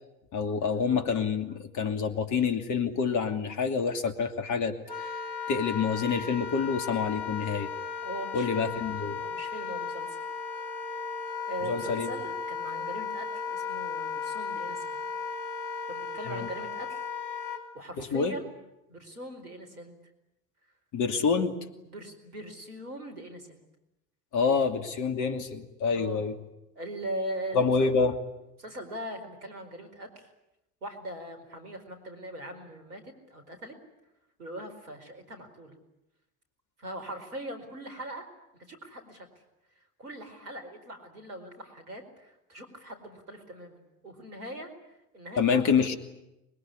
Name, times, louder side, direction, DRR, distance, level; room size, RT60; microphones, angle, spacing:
voice 1, 0.3-5.1 5.5-7.7 8.3-9.2 11.7-12.1 16.3-16.5 18.0-18.4 20.9-21.5 24.3-26.3 27.5-28.1 45.4-46.0, left 5 dB, 40° left, 8 dB, 2.8 m, -27 dB
Wind instrument woodwind instrument, 4.9-17.6, left 5 dB, 80° left, 3.4 m, -35 dB
voice 2, 8.0-8.8 9.2-10.2 11.5-15.0 15.9-17.0 17.7-18.5 18.9-19.9 21.8-23.6 25.9-26.2 26.7-27.9 28.6-30.3 30.8-33.8 34.4-35.8 36.8-38.2 38.5-39.3 40.0-44.7 45.1-45.9, right 1 dB, 75° right, 5 dB, 4.7 m, -41 dB
25.0 x 21.5 x 9.8 m, 0.92 s
figure-of-eight pair, 70°, 45 cm